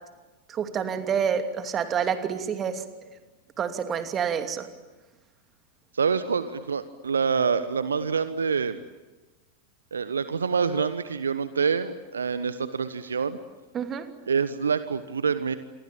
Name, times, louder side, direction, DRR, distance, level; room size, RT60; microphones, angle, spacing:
voice 1, 0.5-2.8 3.6-4.7 13.7-14.1, right 7 dB, 25° right, 8 dB, 2.7 m, -28 dB
voice 2, 5.9-8.8 9.9-13.4 14.3-15.5, right 6 dB, 70° right, 13 dB, 1.1 m, -26 dB
28.0 x 23.5 x 8.9 m, 1.2 s
figure-of-eight pair, 90°, 0 cm